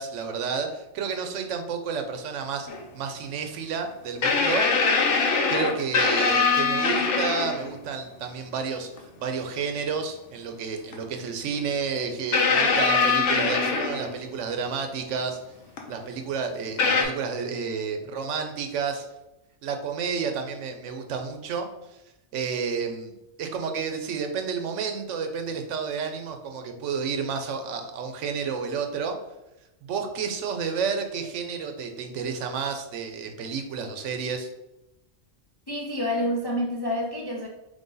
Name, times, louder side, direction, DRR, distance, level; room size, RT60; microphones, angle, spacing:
voice 1, 0.0-2.7 2.9-4.7 5.0-5.2 5.5-15.4 15.9-19.1 19.6-21.7 22.3-23.1 23.4-29.2 29.8-34.5, right 5 dB, 85° right, 5 dB, 1.0 m, -31 dB
sound 1, 2.7-2.8 4.2-7.7 9.0-9.1 10.9-11.0 12.3-14.4 15.8-15.9 16.8-17.0, left 4 dB, 75° left, 1.0 m, -22 dB
voice 2, 35.7-37.5, left 1 dB, 40° left, -2 dB, 0.3 m, -28 dB
3.9 x 3.4 x 3.8 m, 0.95 s
omnidirectional pair, 1.2 m